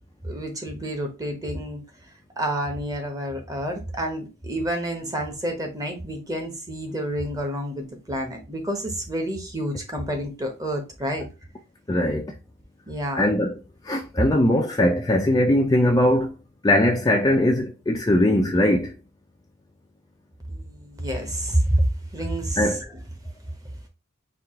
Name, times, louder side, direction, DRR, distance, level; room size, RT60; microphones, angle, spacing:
voice 1, 0.2-1.8 2.4-11.3 12.9-13.3 20.5-22.7, right 1 dB, 15° right, 0.9 m, -28 dB
voice 2, 11.9-12.3 13.2-13.6 13.8-16.3 16.6-19.0 22.6-22.8, left 1 dB, 15° left, 0.4 m, -20 dB
4.6 x 2.4 x 3.6 m
head